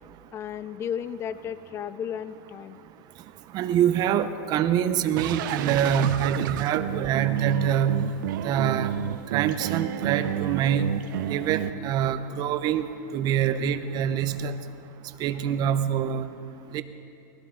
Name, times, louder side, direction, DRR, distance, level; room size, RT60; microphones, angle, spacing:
voice 1, 0.3-2.8, left 8 dB, 25° left, 14 dB, 0.5 m, -34 dB
voice 2, 3.5-8.1 8.4-9.0 9.3-10.9 11.3-12.8 13.1-14.6 15.2-16.3 16.7-16.8, right 9 dB, 40° right, 11 dB, 0.8 m, -25 dB
sound 1, 5.2-11.7, right 11 dB, 70° right, 0.7 m, -31 dB
20.5 x 17.0 x 3.8 m, 2.6 s
supercardioid pair, 140°, 11 cm